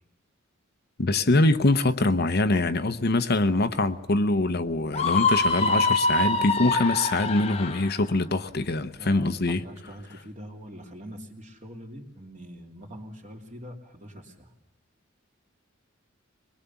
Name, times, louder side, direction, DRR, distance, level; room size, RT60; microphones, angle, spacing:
voice 1, 1.0-9.6, left 2 dB, 50° left, 0.9 m, -24 dB
Screaming, 4.9-7.9, left 3 dB, 30° left, 1.1 m, -24 dB
voice 2, 9.0-14.5, equal, 35° right, 2.9 m, -43 dB
23.0 x 21.5 x 7.1 m
head